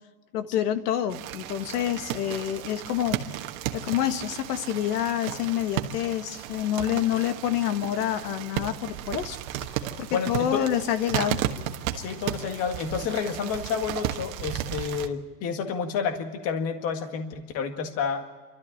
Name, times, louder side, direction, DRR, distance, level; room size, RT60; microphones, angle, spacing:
voice 1, 0.3-3.4 3.7-9.4 9.7-11.4, left 10 dB, 75° left, 9 dB, 1.7 m, -27 dB
sound 1, 1.1-15.1, right 12 dB, 60° right, 1.5 m, -34 dB
voice 2, 10.1-10.6 11.9-18.2, left 6 dB, 30° left, 6 dB, 1.8 m, -30 dB
29.0 x 13.5 x 8.7 m, 1.3 s
supercardioid pair, 165°, 47 cm